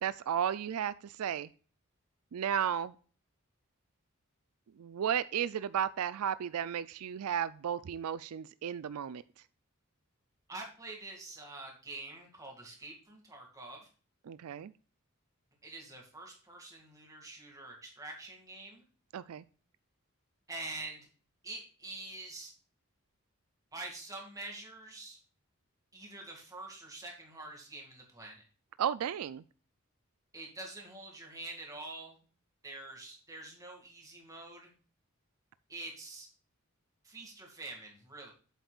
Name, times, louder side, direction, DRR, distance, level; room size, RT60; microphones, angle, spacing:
voice 1, 0.0-1.5 2.3-2.9 4.8-9.2 14.3-14.7 19.1-19.4 28.8-29.4, right 9 dB, 85° right, 17 dB, 0.4 m, -34 dB
voice 2, 10.5-13.9 15.6-18.8 20.5-21.1 21.4-22.5 23.7-25.2 25.9-28.4 30.3-32.2 32.6-34.7 35.7-36.3 37.0-38.3, right 2 dB, 15° right, 0 dB, 2.3 m, -46 dB
8.1 x 7.9 x 2.4 m, 0.39 s
head